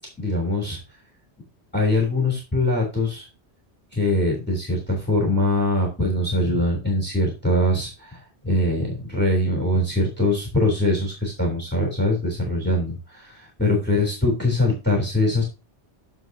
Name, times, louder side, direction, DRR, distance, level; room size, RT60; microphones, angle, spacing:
voice 1, 0.2-0.8 1.7-3.3 3.9-15.4, left 1 dB, 10° left, 0 dB, 3.4 m, -22 dB
11.0 x 7.2 x 2.8 m, 0.28 s
omnidirectional pair, 1.1 m